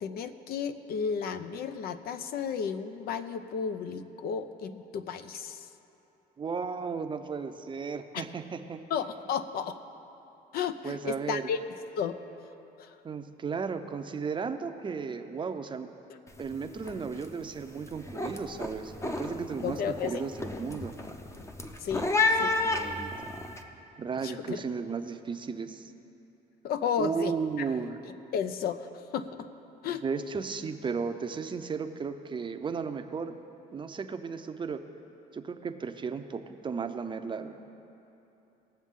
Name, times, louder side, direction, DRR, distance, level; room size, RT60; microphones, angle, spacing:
voice 1, 0.0-5.7 8.1-8.2 8.9-9.8 10.5-11.6 12.0-12.2 12.8-13.0 19.6-20.2 21.8-22.1 22.3-22.5 24.2-24.6 26.6-27.3 28.3-29.5 29.8-30.0, left 7 dB, 65° left, 10 dB, 0.6 m, -33 dB
voice 2, 6.4-8.8 10.8-11.4 13.0-15.9 16.4-20.9 22.4-23.1 24.0-25.9 27.0-28.0 30.0-33.3 33.7-34.8 35.3-37.6, right 5 dB, 30° right, 8 dB, 0.6 m, -35 dB
sound 1, 16.3-16.5 16.8-17.3 17.6-23.6, left 3 dB, 15° left, 0.7 m, -31 dB
19.5 x 7.3 x 3.7 m, 2.9 s
cardioid pair, 110°, 17 cm